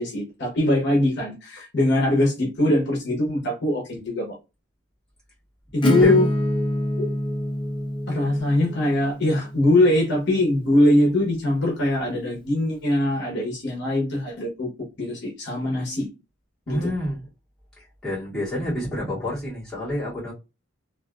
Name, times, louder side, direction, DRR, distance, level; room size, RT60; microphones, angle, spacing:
voice 1, 0.0-4.4 5.7-6.3 7.0-7.1 8.1-14.7 15.0-16.1 16.7-16.9, left 1 dB, 55° left, 0.9 m, -22 dB
Acoustic guitar / Strum, 5.8-11.3, left 1 dB, 25° left, 0.6 m, -27 dB
voice 2, 16.7-17.3 17.8-20.3, left 1 dB, 5° left, 1.9 m, -28 dB
3.2 x 2.6 x 2.4 m
head